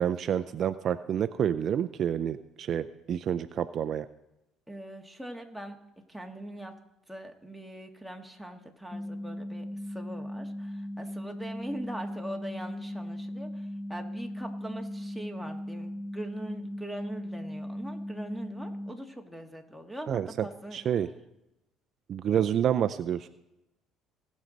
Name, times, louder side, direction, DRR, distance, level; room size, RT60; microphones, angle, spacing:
voice 1, 0.0-4.1 20.1-20.5 20.7-21.1 22.1-23.3, right 9 dB, 55° right, 12 dB, 0.4 m, -28 dB
voice 2, 4.7-5.8 6.1-6.7 7.1-20.8, right 1 dB, ahead, 5 dB, 1.7 m, -41 dB
sound 1, 8.9-18.9, equal, 15° left, 0.8 m, -38 dB
18.5 x 6.4 x 4.0 m, 0.92 s
supercardioid pair, 80°, 0 cm